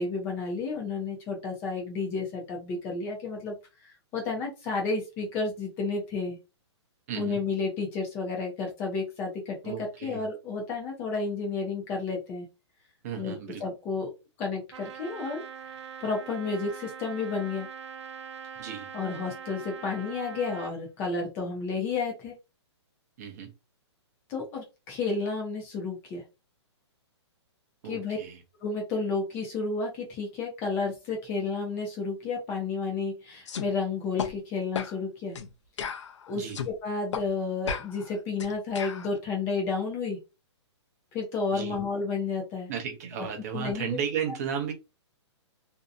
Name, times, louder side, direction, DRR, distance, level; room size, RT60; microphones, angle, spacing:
voice 1, 0.0-3.5 3.8-6.4 7.2-9.7 10.0-12.5 13.2-14.1 14.4-15.7 16.0-17.7 18.9-22.3 24.3-26.2 27.9-28.2 28.6-35.4 36.3-40.2 41.1-42.7 43.1-43.3 43.5-43.9, left 4 dB, 15° left, 0.5 m, -31 dB
voice 2, 7.1-7.4 9.6-10.2 13.0-13.6 18.6-18.9 23.2-23.5 27.8-28.4 36.3-36.6 41.5-41.8 42.7-44.7, right 8 dB, 35° right, 0.7 m, -34 dB
Trumpet, 14.7-20.8, right 7 dB, 75° right, 0.4 m, -42 dB
sound 1, 33.5-33.7 34.2-34.3 34.7-35.0 35.3-35.5 35.8-36.7 37.1-37.3 37.7-39.1, left 6 dB, 80° left, 0.5 m, -34 dB
2.7 x 2.1 x 2.5 m
hypercardioid pair, 170°, 15 cm